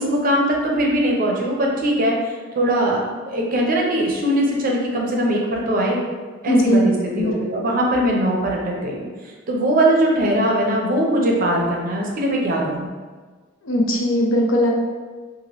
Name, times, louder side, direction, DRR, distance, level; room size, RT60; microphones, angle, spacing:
voice 1, 0.0-6.0 6.4-12.9, right 1 dB, 45° right, -1 dB, 0.5 m, -21 dB
voice 2, 6.4-6.8 7.2-7.3 13.6-14.7, equal, 80° left, -1 dB, 0.6 m, -18 dB
2.9 x 2.4 x 2.9 m, 1.4 s
head